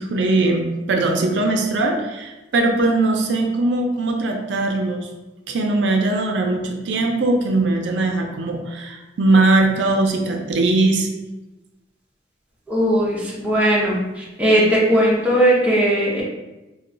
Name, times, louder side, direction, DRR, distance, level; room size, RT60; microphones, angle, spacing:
voice 1, 0.0-5.1 5.5-11.1, right 2 dB, 90° right, 3 dB, 0.4 m, -20 dB
voice 2, 12.7-16.2, equal, 10° right, -5 dB, 0.6 m, -18 dB
2.3 x 2.2 x 3.7 m, 1.0 s
head